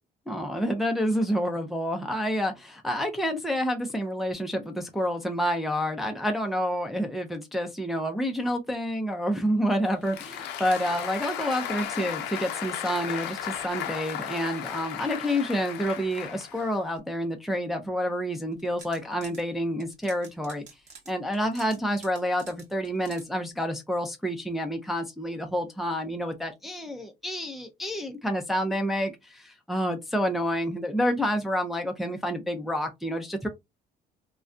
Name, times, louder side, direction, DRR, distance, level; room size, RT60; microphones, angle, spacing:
voice 1, 0.3-20.6 21.1-33.5, equal, ahead, 0.5 m, -28 dB
Applause, 9.9-17.0, left 10 dB, 90° left, 0.5 m, -35 dB
sound 1, 18.5-19.4 19.8-23.2, right 4 dB, 45° right, 0.9 m, -49 dB
2.4 x 2.2 x 2.4 m
cardioid pair, 110°, 17 cm